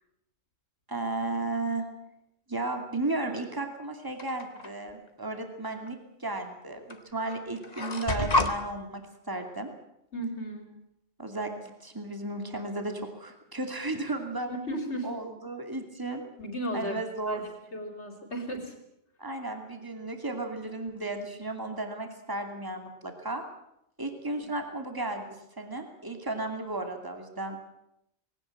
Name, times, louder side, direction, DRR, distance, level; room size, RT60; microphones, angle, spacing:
voice 1, 0.9-1.8 2.5-9.0 9.3-9.7 11.2-11.5 11.8-14.5 15.0-16.2 16.7-17.4 19.2-23.4 24.0-27.7, right 2 dB, 15° right, 5 dB, 2.6 m, -34 dB
sound 1, 4.2-4.7 5.9-6.0 6.9-7.0 7.3-8.5, left 2 dB, 35° left, 1.8 m, -28 dB
voice 2, 10.1-10.7 14.5-15.2 16.4-18.7, equal, 70° left, 5 dB, 4.1 m, -35 dB
20.0 x 18.0 x 8.9 m, 0.80 s
omnidirectional pair, 1.2 m